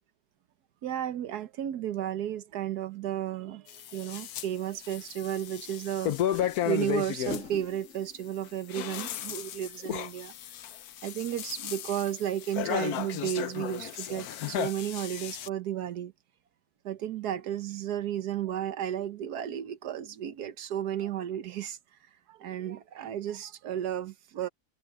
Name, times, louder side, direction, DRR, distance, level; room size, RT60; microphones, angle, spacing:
voice 1, 0.8-10.3 11.0-16.1 16.8-21.8 22.3-24.5, right 11 dB, 80° right, 1.5 m, -33 dB
sound 1, 3.7-4.5 4.8-7.4 8.5-15.5, left 11 dB, 70° left, 1.2 m, -34 dB
sound 2, 4.7-4.8 6.1-10.7 10.9-11.0 11.4-11.5, left 6 dB, 50° left, 2.8 m, -46 dB
omnidirectional pair, 1.7 m